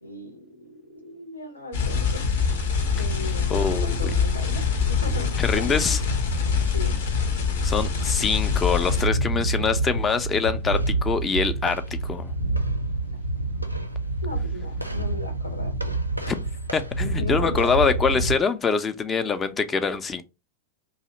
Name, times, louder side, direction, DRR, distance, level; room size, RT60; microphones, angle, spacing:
voice 1, 0.0-2.3 2.9-6.0 6.7-7.0 14.2-15.9 17.2-17.8, left 1 dB, 85° left, 0.9 m, -37 dB
sound 1, 1.7-9.0, left 5 dB, 60° left, 0.7 m, -24 dB
voice 2, 3.5-4.1 5.4-6.0 7.6-12.3 16.3-16.4 16.7-20.2, left 5 dB, 20° left, 0.4 m, -24 dB
sound 2, 8.9-18.3, right 2 dB, 90° right, 0.4 m, -27 dB
2.7 x 2.4 x 4.0 m
figure-of-eight pair, 90°, 0 cm